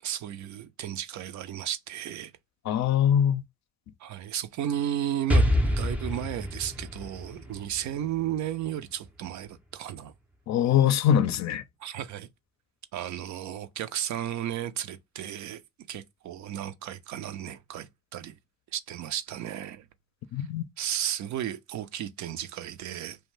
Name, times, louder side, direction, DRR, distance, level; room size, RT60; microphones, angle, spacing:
voice 1, 0.0-2.3 4.0-10.1 11.8-12.3 12.9-15.6 15.9-18.3 18.7-19.9 20.4-20.5 20.8-23.2, right 11 dB, 70° right, 0.5 m, -34 dB
voice 2, 2.6-3.4 10.5-11.6 20.3-20.6, left 9 dB, 65° left, 0.5 m, -23 dB
Explosion, 5.3-9.1, equal, 5° right, 0.4 m, -27 dB
2.5 x 2.2 x 3.0 m
cardioid pair, 90°, 30 cm